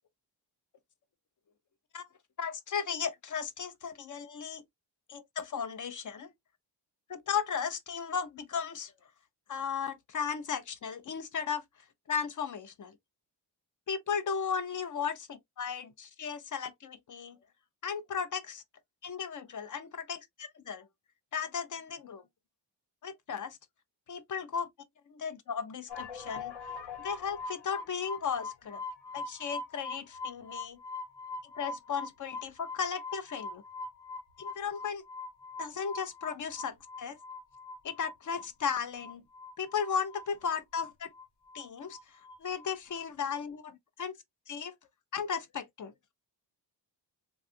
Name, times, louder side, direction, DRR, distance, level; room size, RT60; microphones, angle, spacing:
voice 1, 2.4-4.6 5.1-6.3 7.1-8.9 9.5-11.6 12.1-13.0 13.9-15.3 15.6-17.4 17.8-18.6 19.0-20.9 21.3-22.2 23.0-23.6 24.1-24.7 25.1-26.5 27.0-28.8 29.1-30.8 31.5-33.6 34.4-35.0 35.6-37.2 37.8-39.2 39.6-41.1 41.5-44.1 44.5-44.7 45.1-45.9, left 6 dB, 50° left, 0.5 m, -35 dB
sound 1, 25.9-42.7 42.9-43.4, left 4 dB, 70° left, 1.2 m, -42 dB
3.5 x 2.3 x 2.5 m
wide cardioid pair, 165°, 42 cm